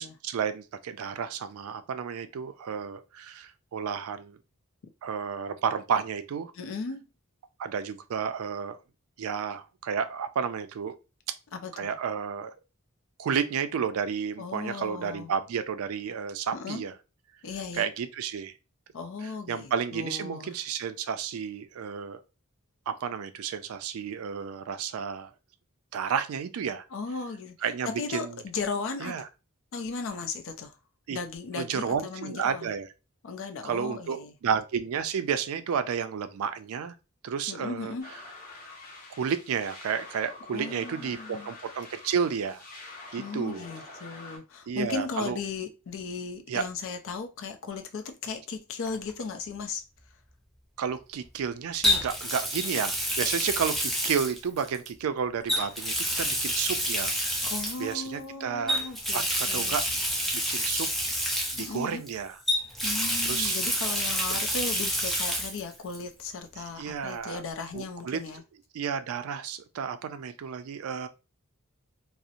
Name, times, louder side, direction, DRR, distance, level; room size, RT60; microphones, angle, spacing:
voice 1, 0.0-4.4 5.0-6.5 7.6-8.8 9.2-10.9 11.7-12.5 13.2-16.9 17.7-18.5 19.2-22.2 22.9-25.3 25.9-26.8 27.6-28.4 29.0-29.2 31.1-31.2 31.5-32.9 33.6-36.9 37.2-37.9 39.1-42.6 43.1-43.6 44.7-45.4 46.5-46.7 50.8-57.5 57.8-58.8 59.1-59.9 60.3-60.9 61.5-62.3 63.2-63.6 64.3-64.4 66.6-67.4 67.7-68.2 68.7-71.1, right 7 dB, 75° right, 0.4 m, -31 dB
voice 2, 6.5-7.1 11.5-12.0 14.4-15.3 16.5-16.9 17.4-17.9 18.9-20.5 26.9-29.2 29.7-30.8 31.1-32.7 33.2-34.3 37.5-38.1 40.5-41.5 43.2-49.8 57.4-59.8 61.6-62.0 62.8-68.4, left 4 dB, 65° left, 0.4 m, -36 dB
sound 1, 38.0-44.4, left 2 dB, 45° left, 0.9 m, -46 dB
Water tap faucet, 48.9-49.1 51.8-54.9 55.5-57.9 58.7-62.1 62.5-65.6 65.9-66.0 67.6-67.7, equal, ahead, 0.4 m, -28 dB
2.8 x 2.0 x 2.4 m
head